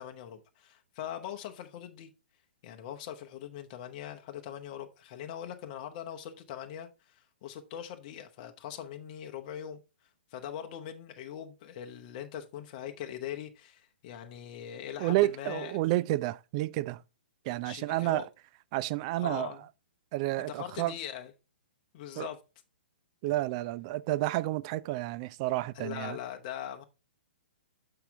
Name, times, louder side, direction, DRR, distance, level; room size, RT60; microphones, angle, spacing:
voice 1, 0.0-2.1 2.6-9.8 10.3-15.8 17.6-18.3 19.2-19.6 20.5-21.3 21.9-22.4 25.7-26.8, left 10 dB, 40° left, 0.8 m, -41 dB
voice 2, 15.0-17.0 17.5-18.2 18.7-19.5 20.1-20.9 22.2-22.3 23.2-26.2, right 17 dB, 35° right, 0.3 m, -30 dB
6.7 x 5.8 x 3.6 m
figure-of-eight pair, 115°, 6 cm